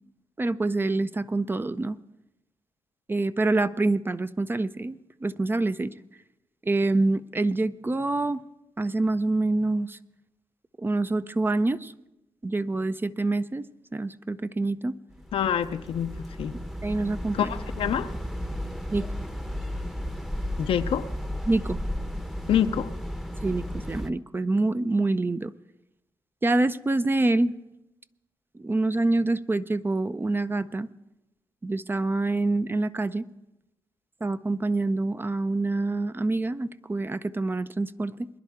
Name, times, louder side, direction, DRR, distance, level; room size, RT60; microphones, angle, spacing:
voice 1, 0.4-2.0 3.1-5.9 6.6-8.4 8.8-10.0 10.8-11.9 12.4-13.7 13.9-15.0 16.8-17.5 18.9-19.1 21.5-21.8 23.4-25.5 26.4-27.5 28.5-30.9 31.6-33.2 34.2-38.3, right 2 dB, 25° right, 0.5 m, -26 dB
sound 1, 15.1-24.1, equal, 5° right, 0.9 m, -34 dB
voice 2, 15.3-16.6 17.3-18.1 20.6-21.1 22.5-22.9, left 9 dB, 85° left, 0.6 m, -26 dB
21.5 x 10.5 x 3.6 m
cardioid pair, 65°, 9 cm